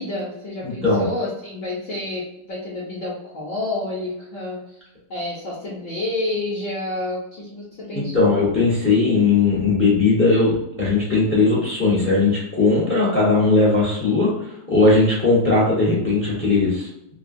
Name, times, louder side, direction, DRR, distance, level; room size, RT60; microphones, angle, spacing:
voice 1, 0.0-8.3, left 2 dB, 60° left, -6 dB, 0.9 m, -29 dB
voice 2, 0.6-1.0 7.9-16.9, left 3 dB, 10° left, -6 dB, 0.6 m, -18 dB
3.3 x 2.2 x 2.5 m, 0.81 s
omnidirectional pair, 1.7 m